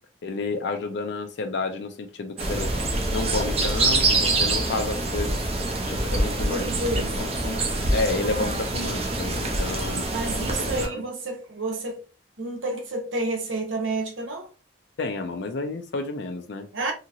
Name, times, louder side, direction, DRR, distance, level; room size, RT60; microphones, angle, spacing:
voice 1, 0.2-2.7 3.1-5.4 5.9-6.6 7.2-7.6 7.9-10.1 10.6-11.0 15.0-16.7, left 3 dB, 60° left, 0.4 m, -30 dB
sound 1, 2.4-10.9, right 2 dB, 30° right, 0.5 m, -25 dB
Packing tape duct tape, 3.2-4.3 4.7-5.0 5.6-5.9 6.9-7.2 7.8-7.9, right 1 dB, 5° left, 0.9 m, -42 dB
voice 2, 6.5-7.3 10.1-12.0 12.4-14.5 16.7-16.9, right 2 dB, 80° right, 0.9 m, -30 dB
2.8 x 2.8 x 2.5 m
head